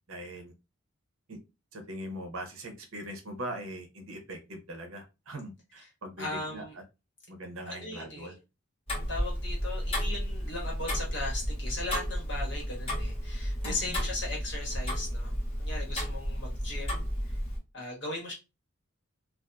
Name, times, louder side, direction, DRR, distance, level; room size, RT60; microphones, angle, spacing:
voice 1, 0.1-0.5 1.3-1.4 1.7-6.6 7.3-8.4 13.6-14.0, right 1 dB, 65° right, 4 dB, 0.7 m, -41 dB
voice 2, 6.2-6.8 7.6-8.3 9.1-17.1 17.7-18.3, left 2 dB, 50° left, -2 dB, 1.2 m, -38 dB
Tick-tock, 8.9-17.6, equal, 25° left, 0.9 m, -32 dB
2.6 x 2.4 x 2.2 m, 0.26 s
head